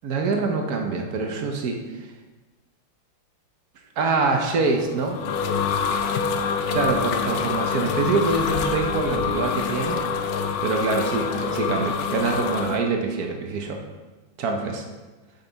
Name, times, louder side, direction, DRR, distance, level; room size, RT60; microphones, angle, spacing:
voice 1, 0.0-1.8 4.0-5.2 6.7-10.0 10.6-13.8 14.4-14.8, right 4 dB, 60° right, 3 dB, 1.1 m, -25 dB
sound 1, 4.8-12.8, left 6 dB, 90° left, 0.8 m, -26 dB
7.9 x 5.4 x 4.0 m, 1.2 s
omnidirectional pair, 2.3 m